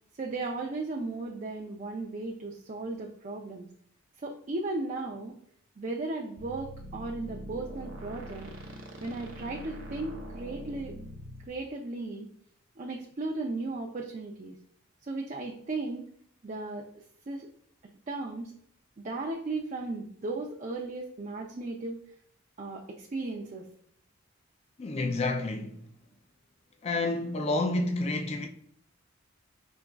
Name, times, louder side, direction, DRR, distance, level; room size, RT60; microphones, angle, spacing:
voice 1, 0.2-3.7 4.2-5.3 5.8-8.5 9.0-10.9 11.5-12.3 12.8-14.6 15.1-16.0 16.4-16.8 17.3-17.5 18.1-18.5 19.0-22.0 22.6-23.6, right 2 dB, 35° right, 0.4 m, -36 dB
sound 1, 6.4-11.5, right 1 dB, 90° right, 0.9 m, -43 dB
voice 2, 24.8-25.9 26.8-28.5, left 2 dB, 30° left, 0.4 m, -29 dB
5.1 x 3.5 x 2.3 m
head